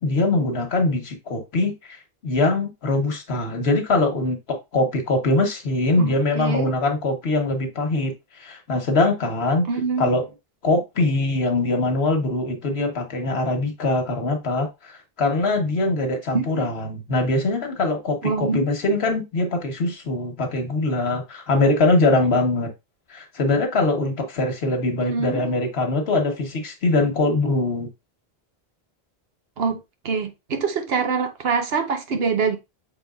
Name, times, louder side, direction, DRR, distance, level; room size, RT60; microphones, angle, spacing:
voice 1, 0.0-2.0 2.2-9.7 10.0-10.3 10.6-22.7 23.1-27.9, left 2 dB, 85° left, 1.4 m, -22 dB
voice 2, 6.0-6.7 9.7-10.1 16.3-16.7 18.2-18.7 25.0-25.5 29.6-32.6, right 5 dB, 75° right, 1.1 m, -25 dB
6.2 x 3.6 x 2.4 m
omnidirectional pair, 1.0 m